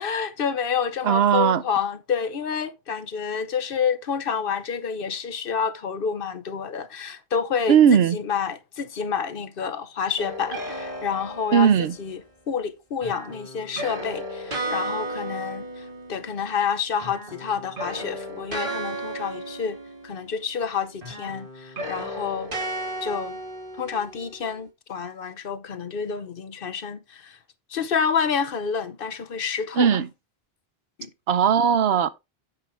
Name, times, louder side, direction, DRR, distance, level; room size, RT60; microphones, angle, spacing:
voice 1, 0.0-12.2 12.5-19.8 20.0-22.5 23.0-23.4 23.8-27.4 27.7-30.0 31.0-31.1, left 6 dB, 65° left, 1.0 m, -28 dB
voice 2, 1.0-1.6 7.7-8.2 11.5-11.9 29.8-30.1 31.3-32.1, right 8 dB, 80° right, 0.9 m, -18 dB
sound 1, 10.2-12.1 13.0-16.7 16.9-20.6 21.0-24.4, right 1 dB, 60° right, 3.0 m, -34 dB
8.5 x 6.3 x 3.3 m
omnidirectional pair, 1.0 m